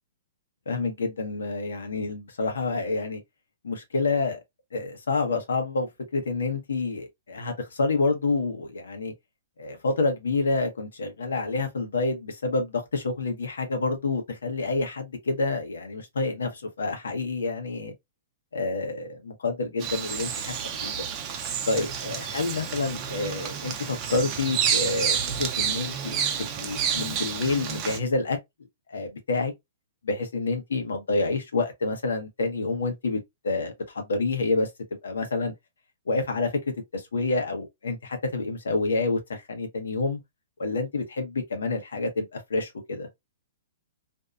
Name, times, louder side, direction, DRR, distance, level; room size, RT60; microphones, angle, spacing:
voice 1, 0.7-3.2 3.6-4.4 4.7-9.1 9.6-17.9 18.5-21.0 21.7-28.4 28.9-29.5 30.0-34.7 35.0-35.5 36.1-36.5 36.9-40.2 40.6-43.1, left 3 dB, 90° left, 1.0 m, -28 dB
Bird vocalization bird call bird song, 19.8-28.0, right 8 dB, 30° right, 0.6 m, -29 dB
2.7 x 2.2 x 2.4 m
hypercardioid pair, 140°, 0 cm